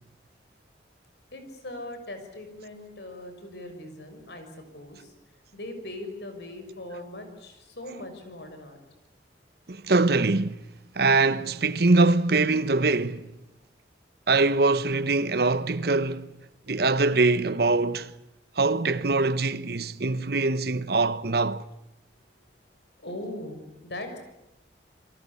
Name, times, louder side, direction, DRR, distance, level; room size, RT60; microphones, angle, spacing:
voice 1, 1.3-5.1 5.5-8.8 23.0-24.2, left 1 dB, 70° left, 6.4 m, -40 dB
voice 2, 9.7-10.6 11.0-13.3 14.3-16.3 16.7-18.1 18.6-21.6, right 3 dB, 60° right, 1.0 m, -23 dB
28.0 x 23.0 x 8.5 m
head